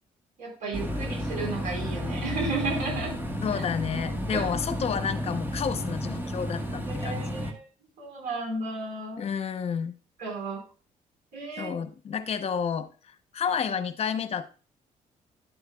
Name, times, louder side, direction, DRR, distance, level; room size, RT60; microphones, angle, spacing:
voice 1, 0.4-3.2 3.6-3.7 4.3-4.5 6.9-7.6 8.0-9.2 10.2-10.6 11.3-11.7, right 3 dB, 90° right, 0 dB, 4.7 m, -33 dB
sound 1, 0.7-7.5, left 1 dB, 15° right, 1.5 m, -32 dB
voice 2, 3.4-7.3 9.2-10.0 11.6-14.5, left 7 dB, 50° left, 11 dB, 0.9 m, -30 dB
11.5 x 8.1 x 2.4 m, 0.36 s
cardioid pair, 110°, 14 cm